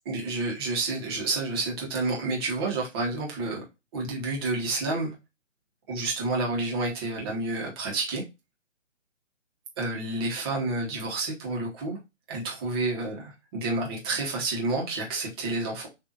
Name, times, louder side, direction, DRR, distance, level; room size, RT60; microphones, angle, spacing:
voice 1, 0.0-3.6 3.9-5.1 5.9-8.2 9.8-12.0 12.3-15.9, right 2 dB, 20° right, 1.1 m, -29 dB
6.8 x 2.7 x 2.5 m
figure-of-eight pair, 140°, 38 cm